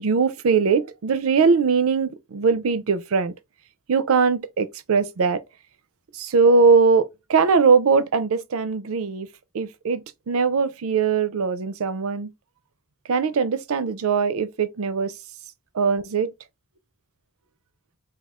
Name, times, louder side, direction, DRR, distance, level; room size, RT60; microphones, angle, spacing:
voice 1, 0.0-3.3 3.9-5.4 6.2-7.0 7.3-9.3 9.5-10.0 10.3-12.3 13.1-15.1 15.7-16.3, right 5 dB, 80° right, 0.5 m, -20 dB
3.5 x 2.3 x 3.5 m
head